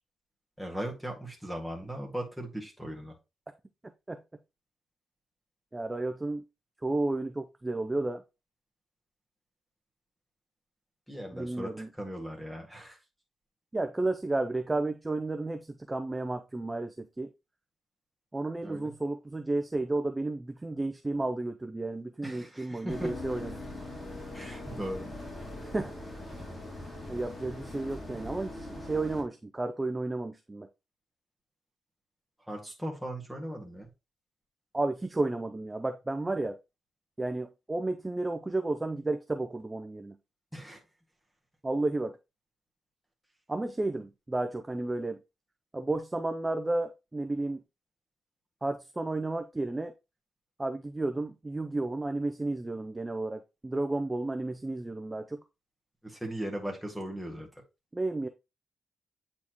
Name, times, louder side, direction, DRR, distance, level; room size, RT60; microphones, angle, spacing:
voice 1, 0.6-3.2 11.1-13.0 18.6-18.9 22.2-23.1 24.3-25.1 32.5-33.9 40.5-40.8 56.0-57.5, equal, ahead, 1.8 m, -38 dB
voice 2, 5.7-6.4 6.8-8.2 11.3-11.9 13.7-17.3 18.3-23.6 25.6-25.9 27.1-30.7 34.7-36.6 37.2-40.2 41.6-42.2 43.5-45.2 45.7-47.6 48.6-49.9 50.6-55.4 57.9-58.3, right 2 dB, 15° right, 0.4 m, -32 dB
sound 1, 22.9-29.2, left 1 dB, 25° left, 2.6 m, -41 dB
8.4 x 4.3 x 3.0 m
wide cardioid pair, 150°, 0 cm